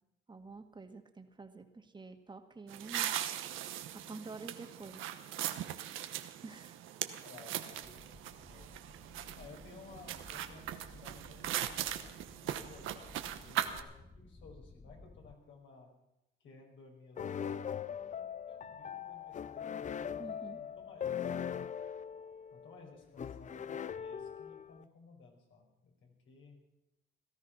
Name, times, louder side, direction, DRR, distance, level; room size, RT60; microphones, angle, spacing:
voice 1, 0.3-3.3 3.9-5.1 6.4-6.8 20.2-20.6, right 3 dB, 25° right, 6 dB, 1.8 m, -48 dB
sound 1, 2.7-13.8, right 11 dB, 90° right, 1.0 m, -40 dB
voice 2, 7.2-8.7 9.4-12.2 12.4-13.9 14.1-15.9 16.4-21.4 22.5-26.6, left 4 dB, 75° left, 0 dB, 5.2 m, -57 dB
sound 2, 7.7-15.3, left 2 dB, 20° left, 1.1 m, -57 dB
sound 3, 17.2-24.8, left 8 dB, 40° left, 0.5 m, -40 dB
17.5 x 13.0 x 5.8 m, 0.88 s
cardioid pair, 90°, 20 cm